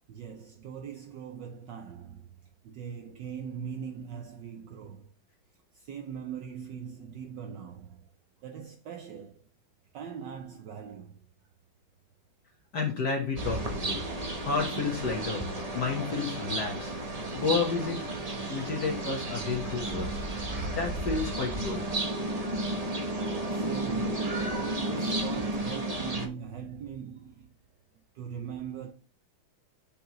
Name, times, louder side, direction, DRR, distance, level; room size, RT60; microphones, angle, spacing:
voice 1, 0.1-5.1 5.7-8.1 8.4-9.5 9.9-11.3 23.5-24.5 24.8-27.6 28.1-28.9, right 7 dB, 70° right, 1.3 m, -41 dB
voice 2, 12.7-14.0 14.4-15.5 15.7-16.9 17.3-18.0 18.5-20.2 20.8-21.8, left 4 dB, 55° left, 1.8 m, -31 dB
sound 1, 13.4-26.3, right 2 dB, 25° right, 0.9 m, -32 dB
7.8 x 6.8 x 3.1 m
omnidirectional pair, 2.2 m